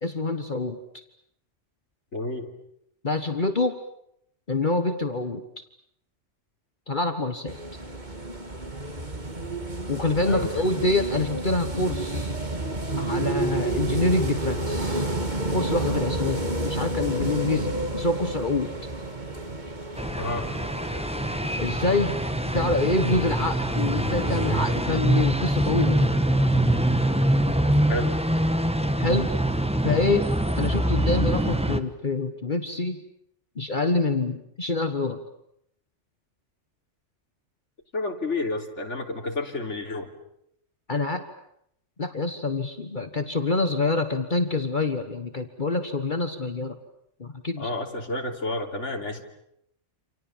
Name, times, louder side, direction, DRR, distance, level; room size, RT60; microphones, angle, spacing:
voice 1, 0.0-0.8 3.0-3.8 4.5-5.4 6.9-7.6 9.9-12.3 13.0-15.0 15.5-18.9 21.6-22.2 22.5-26.1 29.0-29.3 29.8-30.3 30.6-33.0 33.6-35.2 40.9-41.2 42.0-46.8 47.2-47.7, left 3 dB, 40° left, 8 dB, 1.6 m, -26 dB
voice 2, 2.1-2.5 10.3-10.5 20.2-20.5 27.9-28.1 37.9-40.1 47.6-49.2, left 2 dB, 75° left, 3 dB, 3.5 m, -30 dB
sound 1, 7.5-24.6, right 2 dB, 40° right, 2.6 m, -31 dB
sound 2, 20.0-31.8, right 1 dB, 5° right, 1.2 m, -24 dB
28.5 x 27.5 x 7.4 m, 0.75 s
omnidirectional pair, 1.2 m